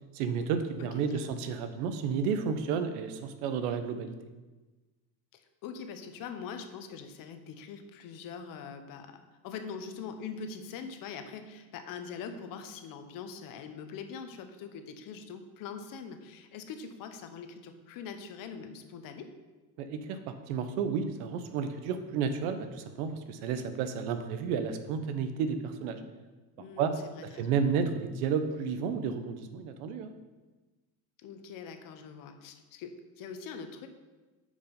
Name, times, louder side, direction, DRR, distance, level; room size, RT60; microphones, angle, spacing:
voice 1, 0.1-4.1 19.8-26.0 26.8-26.9 27.4-30.1, right 6 dB, 90° right, 9 dB, 1.0 m, -32 dB
voice 2, 0.8-1.3 5.3-19.3 26.6-27.5 31.2-33.9, left 6 dB, 50° left, 7 dB, 1.0 m, -43 dB
9.4 x 5.3 x 5.3 m, 1.2 s
cardioid pair, 145°, 42 cm